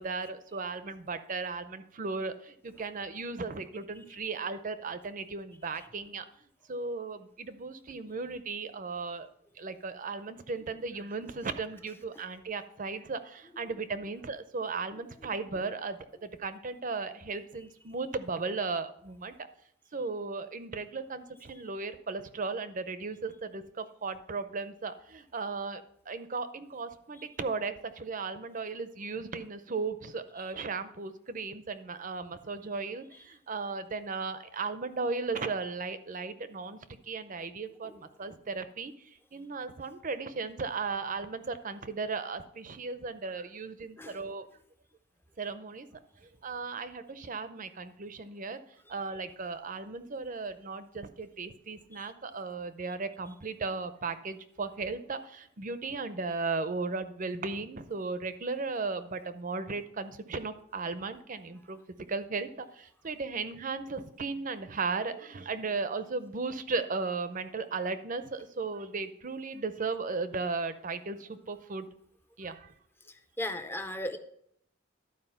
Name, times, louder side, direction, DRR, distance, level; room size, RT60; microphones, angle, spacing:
voice 1, 0.0-6.2 6.7-9.3 9.6-16.0 16.4-19.3 19.9-36.8 37.1-38.9 39.3-44.4 45.4-45.9 46.4-48.6 48.9-61.8 62.1-71.9 72.4-72.7, right 4 dB, 40° right, 11 dB, 0.6 m, -36 dB
voice 2, 73.4-74.2, left 1 dB, 10° left, 8 dB, 0.6 m, -36 dB
12.0 x 4.8 x 5.7 m, 0.71 s
head